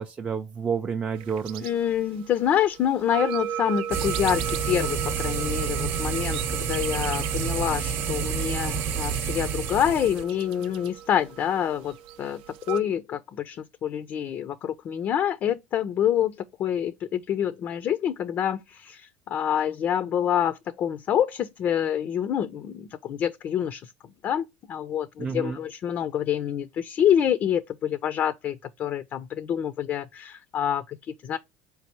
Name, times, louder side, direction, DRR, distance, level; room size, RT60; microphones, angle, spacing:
voice 1, 0.0-1.6 25.2-25.6, right 6 dB, 20° right, 0.4 m, -29 dB
sound 1, 1.1-12.8, right 10 dB, 85° right, 0.5 m, -37 dB
voice 2, 1.6-23.9 24.2-31.4, left 9 dB, 40° left, 0.4 m, -27 dB
sound 2, 3.9-10.2, right 7 dB, 50° right, 0.8 m, -29 dB
4.7 x 3.2 x 3.0 m
supercardioid pair, 120°, 5 cm